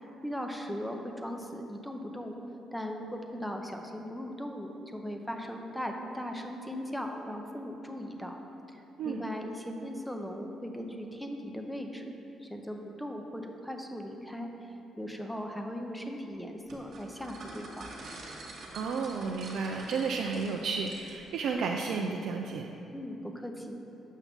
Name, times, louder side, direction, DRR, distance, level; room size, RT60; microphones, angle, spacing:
voice 1, 0.2-2.4 2.7-8.4 8.7-8.8 9.0-12.1 12.4-14.5 15.0-17.9 22.9-23.8, equal, 5° left, 3 dB, 0.6 m, -38 dB
sound 1, 16.7-21.4, right 2 dB, 60° right, 1.5 m, -46 dB
voice 2, 18.7-22.7, right 5 dB, 75° right, 1 dB, 0.3 m, -32 dB
7.2 x 5.6 x 3.5 m, 2.9 s
cardioid pair, 90°, 0 cm